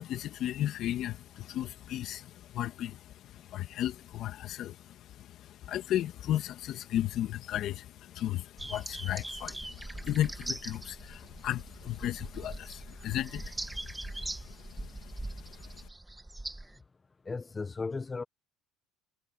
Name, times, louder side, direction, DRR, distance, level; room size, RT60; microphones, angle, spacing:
voice 1, 0.0-15.8, left 12 dB, 55° left, 1.9 m, -35 dB
sound 1, 8.6-16.8, right 2 dB, 10° right, 2.1 m, -41 dB
voice 2, 17.2-18.2, left 4 dB, 20° left, 1.0 m, -35 dB
supercardioid pair, 100°, 0 cm